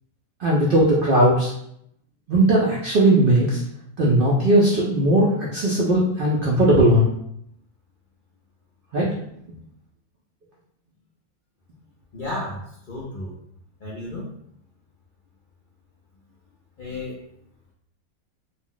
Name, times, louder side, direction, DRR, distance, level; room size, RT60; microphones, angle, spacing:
voice 1, 0.4-1.5 2.3-3.6 4.0-7.1 8.9-9.1, right 1 dB, 70° right, -4 dB, 0.5 m, -18 dB
voice 2, 12.1-12.6 12.9-13.3 13.8-14.3 16.8-17.2, left 1 dB, 60° left, -6 dB, 0.5 m, -32 dB
2.5 x 2.0 x 3.7 m, 0.72 s
omnidirectional pair, 1.5 m